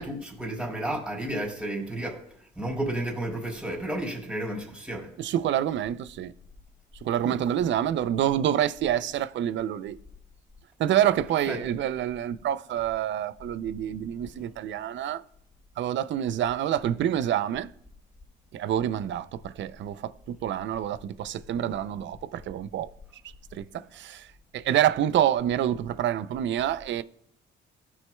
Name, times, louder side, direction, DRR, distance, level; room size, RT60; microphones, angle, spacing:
voice 1, 0.0-2.2 2.5-5.1 7.2-7.4 11.5-11.6, right 1 dB, 5° right, 3.4 m, -32 dB
voice 2, 5.2-6.3 7.0-10.0 10.8-15.2 15.8-17.7 18.5-22.9 23.5-24.3 24.5-27.0, right 11 dB, 65° right, 0.5 m, -27 dB
16.0 x 6.3 x 2.3 m
cardioid pair, 90°, 20 cm